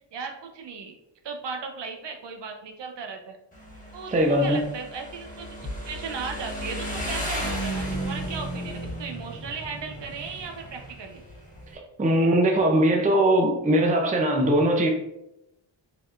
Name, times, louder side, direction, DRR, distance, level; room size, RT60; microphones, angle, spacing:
voice 1, 0.1-1.0 1.2-3.4 3.9-5.6 5.9-11.2, right 5 dB, 65° right, 0.7 m, -36 dB
Motorcycle, 3.5-11.7, equal, 15° left, 1.3 m, -34 dB
voice 2, 4.1-4.6 12.0-14.9, right 1 dB, 20° right, 0.4 m, -20 dB
4.7 x 3.6 x 2.4 m
wide cardioid pair, 160°, 46 cm